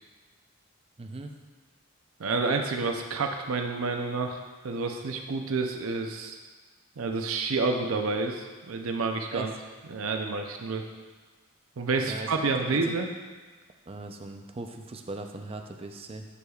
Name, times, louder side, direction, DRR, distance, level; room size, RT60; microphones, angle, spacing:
voice 1, 1.0-1.3 9.3-9.5 12.1-12.3 12.6-12.9 13.9-16.3, right 2 dB, 25° right, 4 dB, 0.5 m, -39 dB
voice 2, 2.2-6.4 7.0-9.5 9.9-10.8 11.8-13.1, right 3 dB, 75° right, 4 dB, 0.6 m, -29 dB
9.7 x 6.3 x 2.4 m, 1.4 s
head